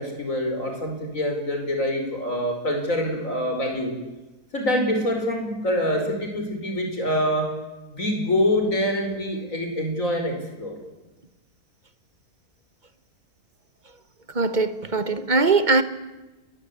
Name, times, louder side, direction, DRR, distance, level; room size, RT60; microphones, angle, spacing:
voice 1, 0.0-4.0 4.5-7.6 7.9-10.7, left 1 dB, 50° left, 5.7 m, -25 dB
voice 2, 14.3-15.8, right 3 dB, 30° right, 1.5 m, -21 dB
30.0 x 22.0 x 8.6 m
omnidirectional pair, 1.7 m